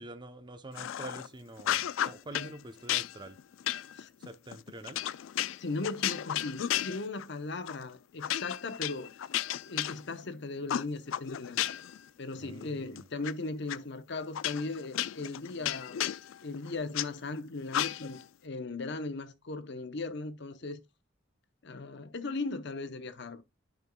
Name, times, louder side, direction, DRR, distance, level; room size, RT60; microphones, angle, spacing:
voice 1, 0.0-3.4 4.2-5.0 12.4-13.1, right 2 dB, 25° right, 0.7 m, -46 dB
sound 1, 0.7-1.3 1.6-2.5 2.9-7.3 7.7-7.8 8.2-10.3 10.7-12.0 12.3-13.3 13.7-13.8 14.3-17.1 17.7-18.2, left 11 dB, 85° left, 0.4 m, -33 dB
voice 2, 5.6-9.1 9.6-11.6 12.2-16.1 16.4-20.8 21.6-23.4, left 3 dB, 60° left, 0.8 m, -38 dB
11.0 x 5.2 x 2.3 m
head